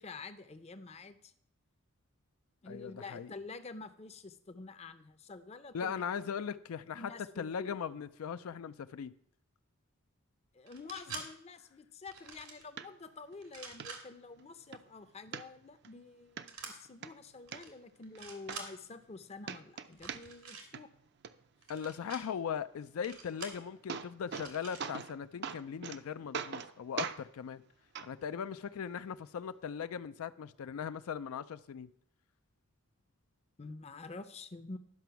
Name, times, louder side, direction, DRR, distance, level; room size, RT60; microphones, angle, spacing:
voice 1, 0.0-1.3 2.6-6.1 6.9-7.8 10.5-20.9 33.6-34.8, left 3 dB, 30° left, 0.5 m, -48 dB
voice 2, 2.7-3.3 5.7-9.1 21.7-27.6 28.0-31.9, left 7 dB, 80° left, 0.4 m, -39 dB
sound 1, 10.7-11.2 12.1-12.6 13.4-14.0 16.5-16.7 17.5-17.7 18.0-18.7 19.9-20.6 21.6-22.2 23.0-23.6 24.4-24.8, right 5 dB, 90° right, 2.1 m, -46 dB
sound 2, 12.8-12.9 13.3-13.4 13.8-13.9 14.4-14.8 15.3-15.9 16.4-16.5 16.8-17.6 18.1-18.2 18.5-19.2 19.4-20.5 20.7-21.3 23.3-23.4 23.7-24.5 24.8-25.1 25.4-26.0 26.3-26.7 27.0-27.2 27.9-28.1 29.0-29.1, right 6 dB, 50° right, 0.5 m, -40 dB
11.0 x 6.0 x 5.7 m
head